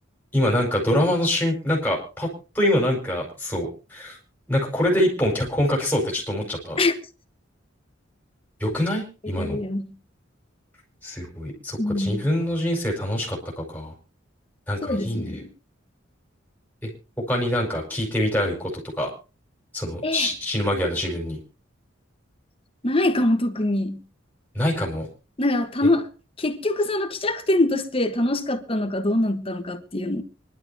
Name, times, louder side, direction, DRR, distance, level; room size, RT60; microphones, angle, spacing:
voice 1, 0.3-2.3 2.5-4.2 4.5-6.8 8.6-9.6 11.0-13.9 14.7-15.4 16.8-16.9 17.3-18.7 19.0-19.1 19.7-21.4 24.5-25.1, left 1 dB, 10° left, 4.9 m, -25 dB
voice 2, 9.4-9.9 11.8-12.2 14.8-15.5 20.0-20.3 22.8-24.0 25.4-26.1 26.4-30.2, left 2 dB, 30° left, 1.3 m, -24 dB
25.0 x 11.5 x 2.8 m
head